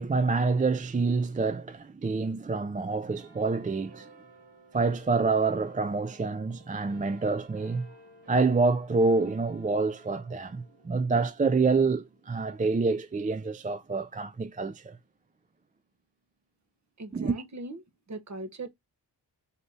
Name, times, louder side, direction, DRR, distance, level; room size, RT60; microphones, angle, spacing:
voice 1, 0.0-4.1 4.7-7.9 8.3-15.0 17.1-17.4, right 4 dB, 20° right, 0.4 m, -27 dB
sound 1, 3.1-16.0 16.7-16.8, right 2 dB, 90° right, 1.7 m, -56 dB
voice 2, 17.0-17.8 18.1-18.7, right 2 dB, 40° right, 1.0 m, -39 dB
4.1 x 2.7 x 3.4 m
cardioid pair, 65°, 42 cm